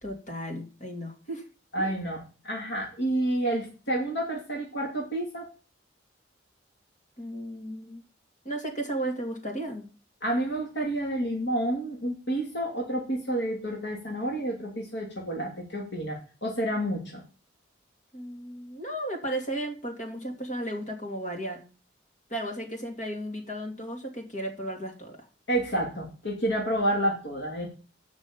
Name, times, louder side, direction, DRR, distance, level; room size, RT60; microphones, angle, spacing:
voice 1, 0.0-1.4 1.8-2.0 7.2-8.0 8.4-9.9 18.1-21.6 22.3-25.3, right 1 dB, 40° left, 1 dB, 2.7 m, -34 dB
voice 2, 1.7-5.4 10.2-17.2 25.5-27.7, right 1 dB, 75° left, -2 dB, 2.8 m, -29 dB
7.5 x 6.1 x 7.3 m, 0.36 s
head